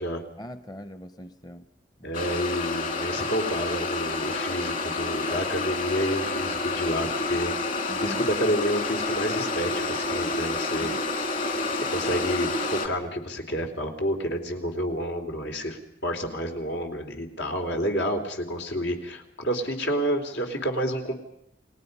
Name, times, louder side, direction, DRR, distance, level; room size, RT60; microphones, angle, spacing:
voice 1, 0.4-1.6 2.0-2.2 7.9-8.2 10.8-11.0, equal, 25° left, 11 dB, 0.8 m, -41 dB
voice 2, 2.0-7.5 8.0-10.9 11.9-21.1, equal, 90° left, 4 dB, 3.5 m, -29 dB
sound 1, 2.1-12.9, left 3 dB, 50° left, 2.6 m, -29 dB
29.5 x 20.0 x 5.5 m, 0.80 s
head